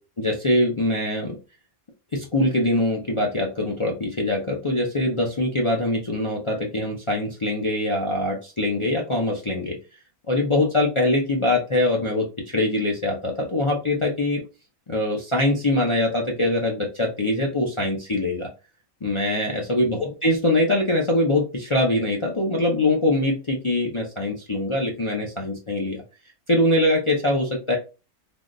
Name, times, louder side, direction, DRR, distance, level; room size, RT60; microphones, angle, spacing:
voice 1, 0.2-1.4 2.1-9.8 10.3-12.3 12.5-14.4 14.9-18.5 19.0-26.0 26.5-27.8, left 1 dB, 50° left, -2 dB, 0.3 m, -23 dB
3.4 x 2.3 x 2.5 m, 0.31 s
omnidirectional pair, 1.4 m